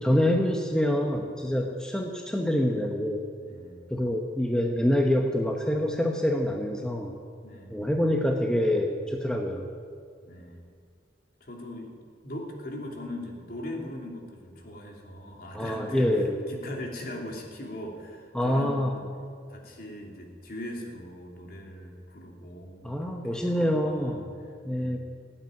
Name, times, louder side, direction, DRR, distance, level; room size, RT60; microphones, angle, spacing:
voice 1, 0.0-3.2 3.9-7.2 7.7-9.7 15.5-16.4 18.3-19.0 22.8-24.3 24.6-25.0, left 1 dB, 5° left, 2 dB, 0.9 m, -26 dB
voice 2, 3.4-3.8 7.4-7.9 10.3-10.6 11.4-11.9 12.2-19.0 19.5-24.2 24.7-24.9, left 1 dB, 50° left, 1 dB, 2.7 m, -40 dB
17.0 x 8.9 x 9.5 m, 2.2 s
head